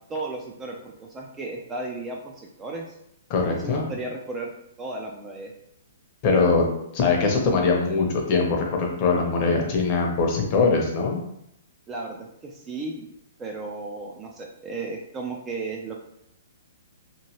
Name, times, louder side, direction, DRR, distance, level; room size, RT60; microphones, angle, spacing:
voice 1, 0.1-2.9 3.5-4.5 4.8-5.5 11.9-13.0 13.4-16.0, right 3 dB, 15° right, 0 dB, 0.3 m, -34 dB
voice 2, 3.3-3.8 6.2-6.6 6.9-11.2, left 4 dB, 35° left, 1 dB, 0.7 m, -22 dB
2.9 x 2.6 x 2.8 m, 0.78 s
hypercardioid pair, 155°, 0 cm